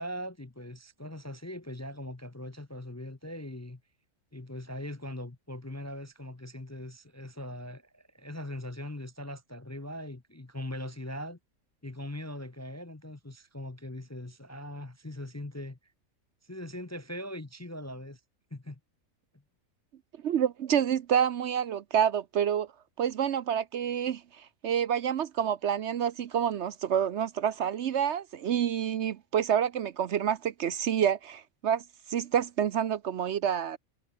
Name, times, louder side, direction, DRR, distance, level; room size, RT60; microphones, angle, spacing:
voice 1, 0.0-3.8 4.3-11.4 11.8-15.8 16.4-18.2 18.5-18.8, left 1 dB, 15° left, 0.6 m, -40 dB
voice 2, 20.2-22.7 23.0-33.8, right 9 dB, 60° right, 0.9 m, -28 dB
omnidirectional pair, 1.4 m